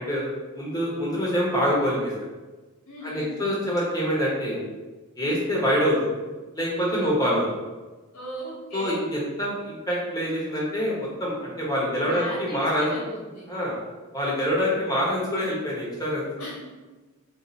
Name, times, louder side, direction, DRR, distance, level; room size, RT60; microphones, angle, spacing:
voice 1, 0.0-2.1 3.0-4.6 5.2-6.1 6.5-7.4 8.7-12.9 13.5-13.7 14.1-16.2, equal, 15° left, -5 dB, 0.9 m, -25 dB
voice 2, 2.9-3.3 6.9-7.3 8.1-9.0 12.0-13.5 16.4-16.5, equal, 85° left, -6 dB, 1.1 m, -37 dB
2.7 x 2.6 x 3.9 m, 1.2 s
head